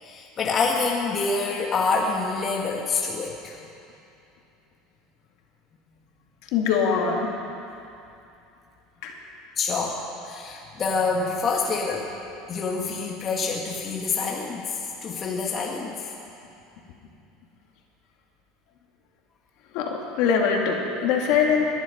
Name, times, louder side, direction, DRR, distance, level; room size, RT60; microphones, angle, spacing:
voice 1, 0.0-3.6 9.6-12.1 12.5-16.1, left 4 dB, 30° left, -1 dB, 1.5 m, -27 dB
voice 2, 6.5-7.3 9.0-9.1 19.7-21.7, left 6 dB, 65° left, 1 dB, 2.2 m, -22 dB
20.5 x 11.0 x 5.2 m, 2.7 s
supercardioid pair, 145°, 0 cm